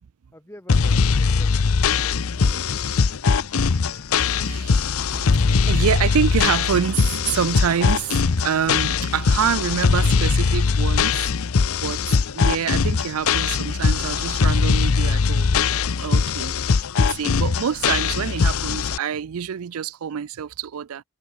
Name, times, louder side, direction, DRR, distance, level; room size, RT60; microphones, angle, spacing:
voice 1, 0.3-2.8, equal, 10° left, 7.1 m, -47 dB
sound 1, 0.7-19.0, left 5 dB, 75° left, 0.6 m, -21 dB
voice 2, 3.4-4.0 4.3-4.9 5.7-11.3 11.8-15.6 16.0-21.0, right 8 dB, 80° right, 0.4 m, -27 dB
sound 2, 5.1-9.3, right 1 dB, 45° right, 1.6 m, -42 dB
head